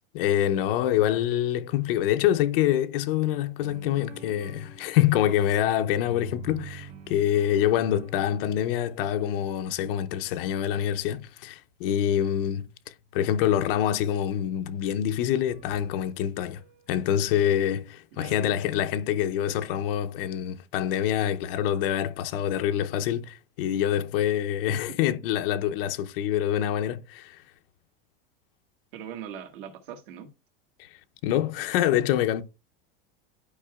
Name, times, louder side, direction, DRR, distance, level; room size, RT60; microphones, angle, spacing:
voice 1, 0.1-16.6 16.9-27.4 30.8-30.9 31.2-32.4, left 11 dB, 75° left, 0.6 m, -26 dB
sound 1, 3.6-5.8 6.0-10.4 15.4-17.5, right 5 dB, 40° right, 2.0 m, -48 dB
voice 2, 28.9-30.3, right 8 dB, 65° right, 1.6 m, -41 dB
11.5 x 4.8 x 2.3 m
supercardioid pair, 150°, 29 cm